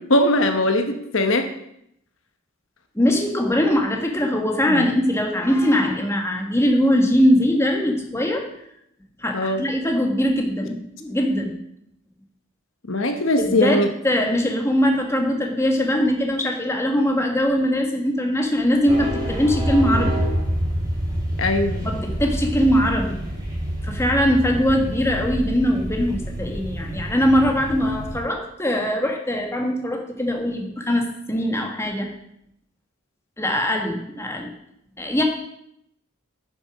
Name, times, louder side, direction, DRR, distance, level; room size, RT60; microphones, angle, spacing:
voice 1, 0.1-1.4 4.7-4.9 9.3-9.6 12.9-13.9 21.4-21.9, left 1 dB, 65° left, 6 dB, 1.0 m, -20 dB
voice 2, 2.9-8.5 9.2-11.5 13.4-20.2 21.8-23.2 23.8-32.1 33.4-34.5 35.0-35.2, equal, 15° left, 2 dB, 1.5 m, -21 dB
sound 1, 18.9-28.2, equal, 20° right, 3.4 m, -27 dB
9.7 x 6.9 x 6.2 m, 0.75 s
head